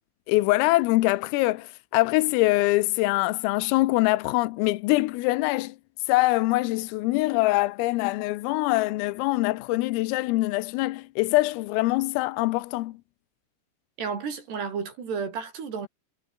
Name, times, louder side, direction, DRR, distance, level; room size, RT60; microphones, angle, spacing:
voice 1, 0.3-5.8 6.1-12.9, left 20 dB, 90° left, 3.6 m, -24 dB
voice 2, 14.0-15.9, right 6 dB, 55° right, 6.5 m, -32 dB
omnidirectional pair, 5.9 m